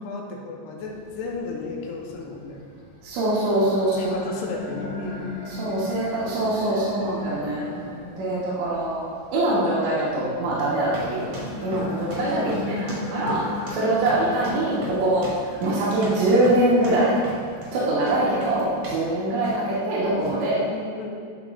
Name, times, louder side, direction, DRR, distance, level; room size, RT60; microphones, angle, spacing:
voice 1, 0.0-2.6 3.9-5.3 12.4-13.1 13.8-15.0 20.7-21.1, left 3 dB, 75° left, -1 dB, 2.7 m, -35 dB
sound 1, 0.8-19.0, left 3 dB, 60° left, 2.9 m, -39 dB
voice 2, 3.0-4.1 5.6-7.6 8.2-11.2 11.6-12.5 12.8-13.4 13.7-15.3 15.6-17.2 17.7-20.6, right 1 dB, 80° right, -9 dB, 3.5 m, -23 dB
sound 2, 10.8-19.1 19.4-19.8 20.2-20.4, right 1 dB, 50° right, 2.6 m, -36 dB
12.0 x 5.2 x 2.5 m, 2.4 s
omnidirectional pair, 5.0 m